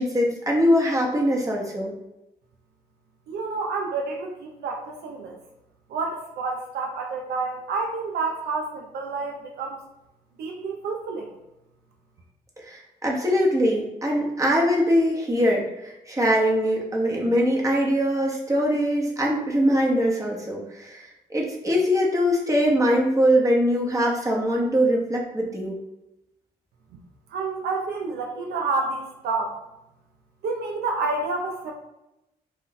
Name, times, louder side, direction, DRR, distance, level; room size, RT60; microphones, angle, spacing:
voice 1, 0.0-1.9 12.6-25.8, equal, 20° right, -1 dB, 0.9 m, -22 dB
voice 2, 3.3-5.4 5.9-9.8 10.4-11.3 27.3-29.6 30.4-31.7, right 3 dB, 80° right, 1 dB, 0.5 m, -29 dB
2.5 x 2.2 x 3.8 m, 0.90 s
supercardioid pair, 60°, 16 cm